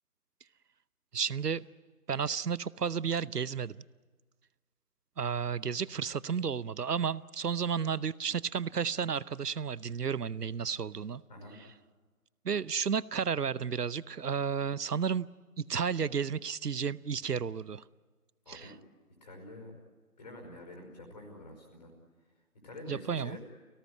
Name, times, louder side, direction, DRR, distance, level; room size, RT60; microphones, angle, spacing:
voice 1, 1.1-1.6 2.1-3.8 5.2-11.2 12.4-15.3 15.6-17.8 18.5-18.7 22.9-23.4, right 6 dB, 80° right, 0.8 m, -32 dB
voice 2, 19.2-19.7 20.2-21.9 22.6-23.4, left 1 dB, 25° left, 5.1 m, -47 dB
29.5 x 18.0 x 9.6 m
figure-of-eight pair, 160°, 46 cm